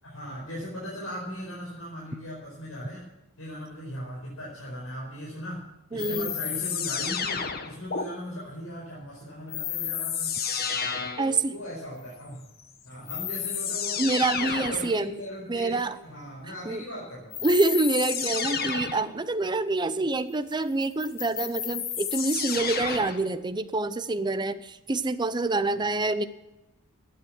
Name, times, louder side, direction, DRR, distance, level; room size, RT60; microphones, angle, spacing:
voice 1, 0.0-3.1 3.4-5.6 5.9-10.3 11.2-12.4 12.8-14.0 14.4-17.4 25.7-25.8, equal, 80° left, -5 dB, 4.9 m, -38 dB
voice 2, 5.9-6.3 11.2-11.5 14.0-15.1 15.5-16.0 16.6-16.8 17.4-26.3, right 2 dB, 20° right, 11 dB, 0.6 m, -26 dB
sound 1, 6.0-8.0 9.5-11.3 12.6-12.7 13.1-14.9 17.3-19.1 20.8-23.3, left 7 dB, 45° left, 1.4 m, -31 dB
15.5 x 9.8 x 6.2 m, 0.96 s
head